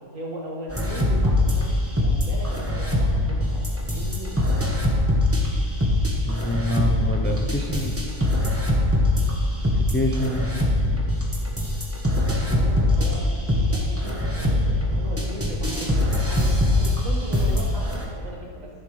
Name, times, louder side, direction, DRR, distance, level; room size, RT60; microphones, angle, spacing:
voice 1, 0.0-1.7 2.0-4.9 12.3-18.7, equal, 85° right, -3 dB, 2.2 m, -37 dB
sound 1, 0.7-18.1, left 1 dB, 10° right, 1.2 m, -22 dB
voice 2, 6.2-8.0 9.7-10.6 12.1-12.7, left 1 dB, 15° left, 1 dB, 0.5 m, -27 dB
11.5 x 10.5 x 3.3 m, 2.2 s
omnidirectional pair, 1.3 m